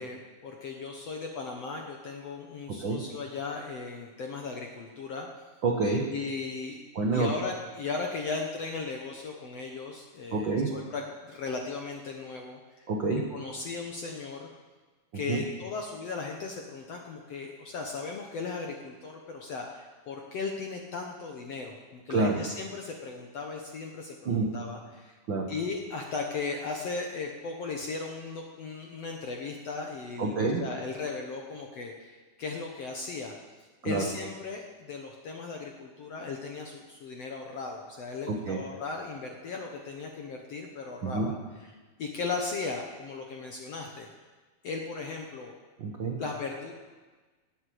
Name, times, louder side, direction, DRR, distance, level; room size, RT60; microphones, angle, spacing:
voice 1, 0.0-5.3 6.1-6.8 7.1-12.9 13.3-14.5 15.1-25.2 25.5-33.4 33.8-44.1 44.6-45.6 46.2-46.7, left 4 dB, 65° left, 1 dB, 1.6 m, -37 dB
voice 2, 5.6-6.0 6.9-7.3 10.3-10.7 12.9-13.2 15.3-15.4 22.1-22.4 24.2-24.5 25.3-25.5 30.2-30.6 33.8-34.1 38.3-38.6 41.0-41.3 45.8-46.2, right 3 dB, 70° right, 1 dB, 1.1 m, -27 dB
18.5 x 8.2 x 7.8 m, 1.3 s
omnidirectional pair, 4.3 m